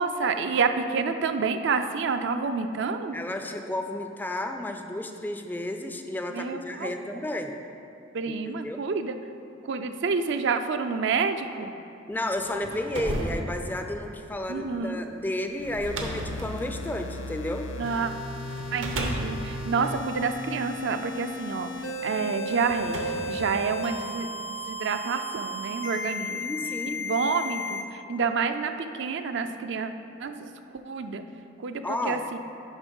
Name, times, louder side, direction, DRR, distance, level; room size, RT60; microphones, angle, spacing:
voice 1, 0.0-3.2 6.3-7.2 8.1-9.2 9.6-11.7 14.5-15.0 17.8-18.1 18.7-21.7 22.0-26.4 27.0-29.9 30.2-30.5 30.9-31.2 31.6-32.4, right 5 dB, 65° right, 8 dB, 0.4 m, -28 dB
voice 2, 3.1-7.5 8.3-8.8 12.1-17.7 26.4-27.0 31.8-32.2, left 1 dB, 10° left, 5 dB, 0.3 m, -32 dB
sound 1, 12.3-17.9 18.5-20.9 21.8-21.9 22.5-24.2, right 1 dB, 80° right, 0.9 m, -35 dB
sound 2, 15.8-27.8, left 1 dB, 80° left, 0.7 m, -35 dB
7.1 x 5.0 x 5.3 m, 2.7 s
head